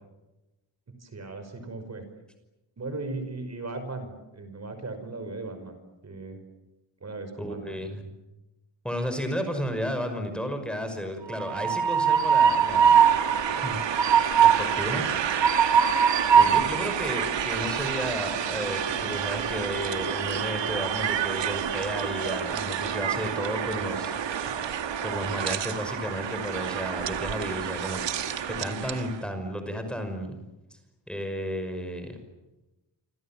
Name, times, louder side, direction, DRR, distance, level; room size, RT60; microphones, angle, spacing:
voice 1, 0.9-2.0 2.8-6.4 7.0-7.8, right 3 dB, 35° right, 8 dB, 5.7 m, -37 dB
voice 2, 7.4-8.1 8.8-13.0 13.6-13.8 14.4-15.3 16.3-24.5 25.0-28.3 28.6-30.3 31.1-32.2, equal, ahead, 6 dB, 5.7 m, -33 dB
Train, 11.3-29.1, right 7 dB, 75° right, 2.2 m, -25 dB
29.0 x 26.0 x 7.5 m, 0.99 s
wide cardioid pair, 125°, 44 cm